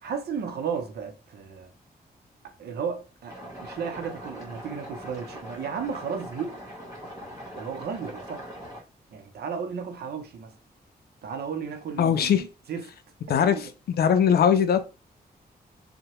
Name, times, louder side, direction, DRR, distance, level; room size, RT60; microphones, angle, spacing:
voice 1, 0.0-1.7 2.4-6.6 7.6-8.4 9.1-10.5 11.2-12.8 13.3-13.7, right 6 dB, 75° right, 0.6 m, -34 dB
sound 1, 3.3-8.8, equal, 20° right, 1.4 m, -41 dB
voice 2, 12.0-12.4 13.3-13.7 14.0-14.9, left 8 dB, 70° left, 0.4 m, -20 dB
2.7 x 2.1 x 2.9 m
cardioid pair, 75°, 17 cm